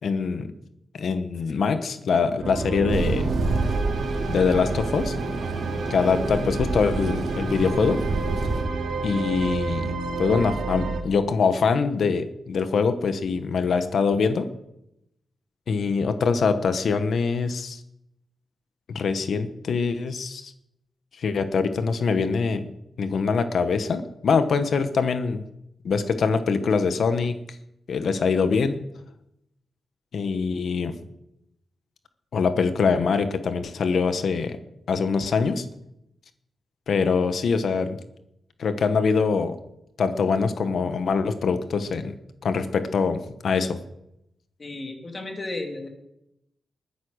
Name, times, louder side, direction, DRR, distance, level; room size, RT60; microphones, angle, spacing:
voice 1, 0.0-0.5 0.9-3.3 4.3-5.1 5.9-8.0 9.0-14.5 15.7-17.8 18.9-20.5 21.2-22.6 23.0-25.4 25.8-27.4 27.9-28.8 30.1-30.9 32.3-34.6 34.9-35.7 36.9-38.0 38.6-39.6 40.0-42.2 42.4-43.8, left 5 dB, 60° left, 9 dB, 1.3 m, -23 dB
sound 1, 2.4-11.0, right 3 dB, 80° right, 2.9 m, -30 dB
sound 2, 2.9-8.6, right 3 dB, 60° right, 3.0 m, -29 dB
voice 2, 5.8-6.2 44.6-45.9, left 2 dB, 25° left, 4 dB, 2.5 m, -34 dB
21.0 x 9.9 x 6.5 m, 0.81 s
wide cardioid pair, 155°, 0 cm